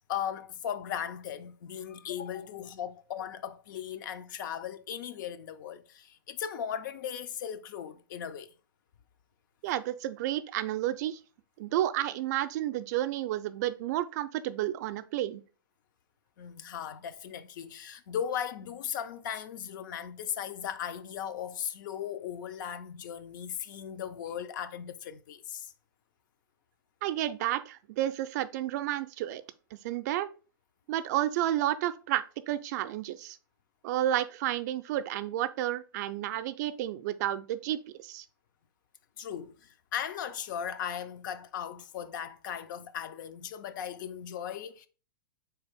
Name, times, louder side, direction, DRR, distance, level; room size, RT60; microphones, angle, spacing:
voice 1, 0.1-8.5 16.4-25.7 39.2-44.9, left 9 dB, 60° left, 0.4 m, -37 dB
voice 2, 9.6-11.2 11.6-15.4 27.0-29.4 29.7-30.3 30.9-33.4 33.8-38.3, right 13 dB, 55° right, 0.4 m, -31 dB
4.0 x 3.3 x 3.4 m
hypercardioid pair, 115°, 11 cm